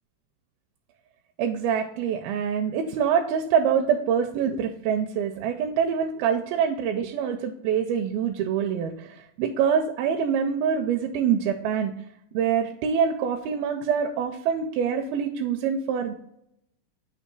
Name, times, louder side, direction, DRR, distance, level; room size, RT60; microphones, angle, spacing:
voice 1, 1.4-11.9 12.3-16.1, right 7 dB, 85° right, 3 dB, 2.4 m, -25 dB
8.5 x 2.9 x 4.6 m, 0.73 s
omnidirectional pair, 4.2 m